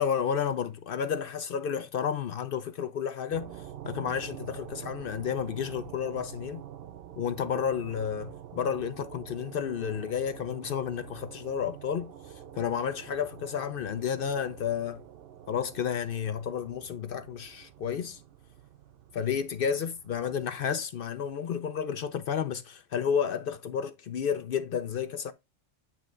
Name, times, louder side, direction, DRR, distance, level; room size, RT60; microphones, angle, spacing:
voice 1, 0.0-6.6 7.2-12.1 12.6-15.0 15.5-18.2 19.1-25.3, left 7 dB, 60° left, 0.6 m, -31 dB
sound 1, 3.3-20.7, right 10 dB, 60° right, 0.7 m, -47 dB
8.8 x 3.3 x 3.7 m
omnidirectional pair, 1.2 m